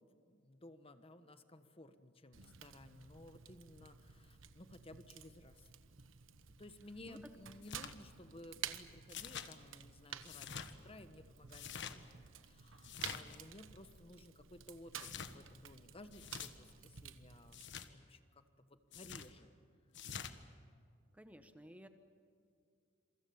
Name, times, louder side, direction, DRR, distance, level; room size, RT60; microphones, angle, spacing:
voice 1, 0.0-5.7 6.6-17.6 17.8-19.5, left 1 dB, 30° left, 10 dB, 1.3 m, -57 dB
Fire, 2.3-17.7, right 9 dB, 85° right, 1.2 m, -52 dB
sound 1, 7.6-7.9 9.1-9.5 10.2-10.7 11.5-12.0 12.8-13.4 14.9-15.3 16.1-16.5 17.5-17.9 18.9-19.3 19.9-20.3, left 7 dB, 65° left, 1.5 m, -47 dB
voice 2, 21.1-21.9, equal, 5° right, 8 dB, 1.1 m, -55 dB
27.5 x 24.0 x 7.2 m, 2.4 s
head